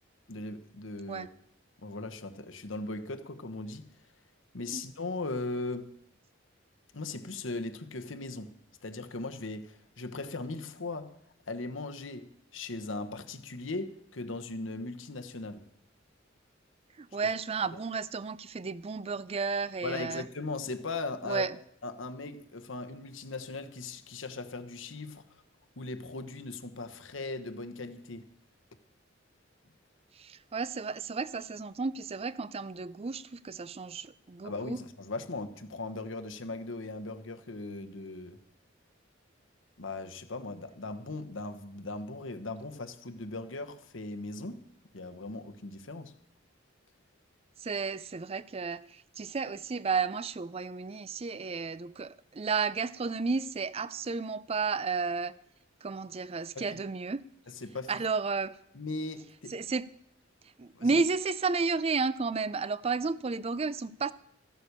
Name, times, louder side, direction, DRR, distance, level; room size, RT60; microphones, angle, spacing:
voice 1, 0.3-1.3 1.8-3.9 4.5-5.9 6.9-8.6 8.8-11.2 11.5-15.6 17.2-17.3 17.7-17.8 19.8-21.5 21.8-25.2 25.8-28.3 34.4-38.4 39.8-44.7 44.9-46.1 56.5-56.8 57.5-58.0 58.7-59.6 60.7-60.9, left 3 dB, 80° left, 1.1 m, -38 dB
voice 2, 17.0-20.2 21.2-21.6 30.2-34.8 47.6-55.3 55.8-57.2 57.9-58.5 59.5-59.9 60.6-64.1, right 4 dB, 30° right, 0.4 m, -32 dB
14.0 x 9.2 x 6.7 m
head